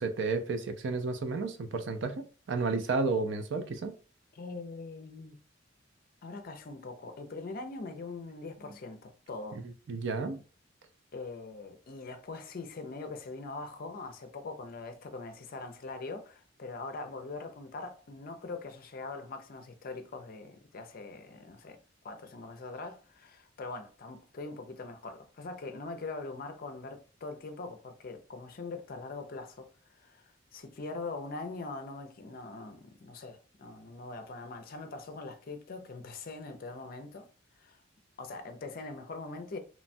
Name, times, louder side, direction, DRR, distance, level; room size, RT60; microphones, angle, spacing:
voice 1, 0.0-3.9 9.9-10.4, right 3 dB, 65° right, 0.4 m, -32 dB
voice 2, 4.3-5.4 6.2-9.6 11.1-21.8 22.0-37.3 37.6-37.8 38.2-39.6, left 3 dB, 50° left, 0.4 m, -42 dB
3.0 x 2.2 x 2.6 m
head